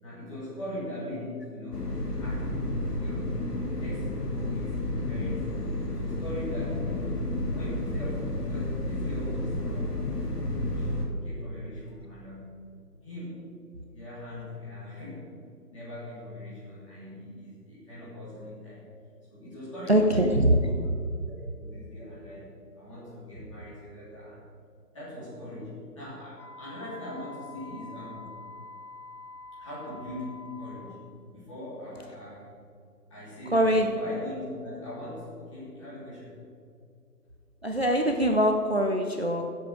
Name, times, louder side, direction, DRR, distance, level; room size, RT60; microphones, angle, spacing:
voice 1, 0.0-1.9 2.2-3.4 3.8-5.5 5.8-7.2 7.5-10.9 11.2-12.6 13.0-13.5 13.9-15.3 15.6-18.8 19.3-20.8 21.3-22.5 22.8-24.4 24.9-28.3 29.5-31.0 31.3-32.5 33.1-36.4, left 1 dB, 20° left, -9 dB, 3.2 m, -41 dB
sound 1, 1.7-11.1, left 1 dB, 65° left, 2.5 m, -31 dB
voice 2, 19.9-20.6 33.5-33.9 37.6-39.5, equal, 40° right, 3 dB, 0.6 m, -23 dB
Wind instrument woodwind instrument, 26.4-31.2, left 3 dB, 90° left, 1.9 m, -46 dB
14.0 x 7.8 x 5.0 m, 2.4 s
figure-of-eight pair, 175°, 49 cm